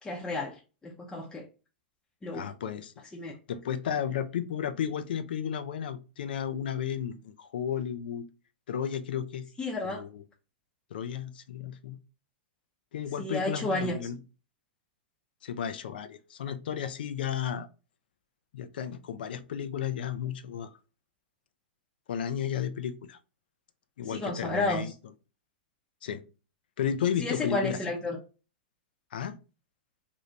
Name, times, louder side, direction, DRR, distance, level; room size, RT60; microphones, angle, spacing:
voice 1, 0.0-1.5 2.2-2.4 3.1-3.4 9.6-10.0 13.2-14.0 24.0-24.8 27.2-28.2, left 2 dB, 15° left, 0.6 m, -32 dB
voice 2, 2.3-2.9 3.5-8.2 8.7-9.4 9.8-10.2 10.9-12.0 12.9-14.2 15.4-17.7 18.5-20.8 22.1-23.2 24.0-24.9 26.0-26.2 26.8-27.8 29.1-29.4, left 8 dB, 75° left, 0.4 m, -33 dB
2.7 x 2.7 x 3.2 m
hypercardioid pair, 115°, 5 cm